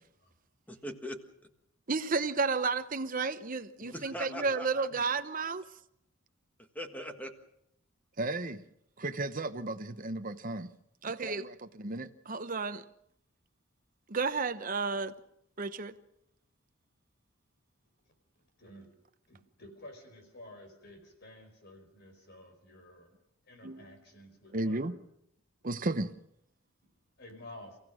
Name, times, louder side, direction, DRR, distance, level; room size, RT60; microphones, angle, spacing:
voice 1, 0.7-1.5 3.9-4.9 6.6-7.3, equal, 5° left, 1.5 m, -41 dB
voice 2, 1.9-5.6 8.2-8.6 9.0-10.7 11.0-12.8 14.1-15.1 15.6-15.9 23.6-23.8 24.5-24.9 25.6-26.1, right 3 dB, 40° right, 0.9 m, -32 dB
voice 3, 3.8-4.5 4.9-5.0 18.6-18.9 19.3-23.1 23.4-25.0 26.8-26.9 27.2-27.8, left 1 dB, 50° left, 4.9 m, -52 dB
30.0 x 16.0 x 6.4 m
head